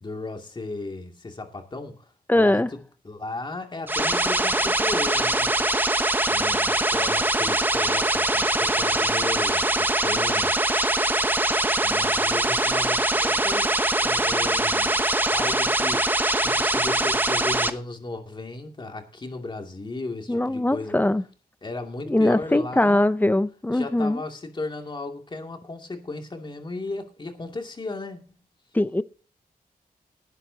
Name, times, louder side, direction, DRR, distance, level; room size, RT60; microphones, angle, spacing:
voice 1, 0.0-2.1 2.4-2.8 3.0-5.6 6.3-11.0 11.8-15.0 15.3-21.0 21.6-23.1 23.7-28.2, left 3 dB, 30° left, 2.5 m, -35 dB
voice 2, 2.3-2.7 20.3-21.2 22.1-24.2 28.7-29.0, left 1 dB, 10° left, 0.6 m, -21 dB
sound 1, 3.9-17.7, right 1 dB, 10° right, 1.0 m, -22 dB
18.0 x 11.5 x 2.8 m
wide cardioid pair, 165°, 16 cm